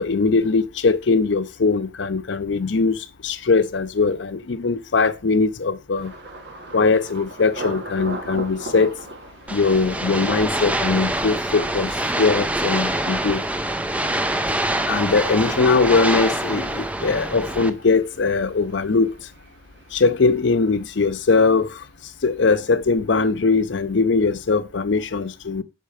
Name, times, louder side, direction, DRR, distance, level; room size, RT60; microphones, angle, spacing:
voice 1, 0.0-6.1 6.7-8.9 9.5-13.4 14.9-19.1 19.9-21.8 22.2-25.6, left 4 dB, 75° left, 0.6 m, -20 dB
Thunder, 6.0-21.7 22.0-22.6 23.0-23.3, right 2 dB, 60° right, 1.3 m, -40 dB
sound 1, 9.5-17.7, right 1 dB, 10° right, 0.4 m, -25 dB
5.4 x 4.3 x 4.9 m
head